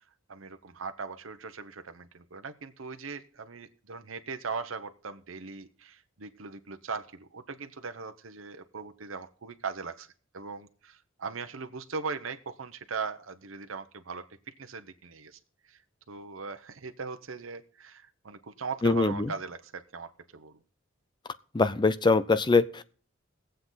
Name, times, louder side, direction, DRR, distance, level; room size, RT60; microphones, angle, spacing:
voice 1, 0.3-10.1 10.3-15.4 15.7-15.8 16.1-20.6, right 5 dB, 80° right, 0.9 m, -39 dB
voice 2, 18.8-19.3 21.5-22.9, left 3 dB, 25° left, 0.5 m, -23 dB
21.0 x 7.8 x 4.0 m
head